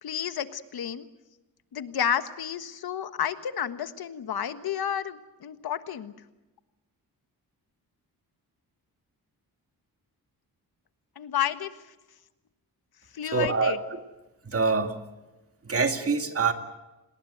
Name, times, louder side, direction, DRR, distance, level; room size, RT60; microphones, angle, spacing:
voice 1, 0.0-1.1 1.7-6.1 11.2-11.7 13.1-13.8, left 9 dB, 80° left, 11 dB, 1.5 m, -31 dB
voice 2, 13.2-14.0 14.4-15.0 15.6-16.5, right 4 dB, 40° right, 7 dB, 2.2 m, -25 dB
28.5 x 20.0 x 8.0 m, 1.1 s
wide cardioid pair, 115°, 37 cm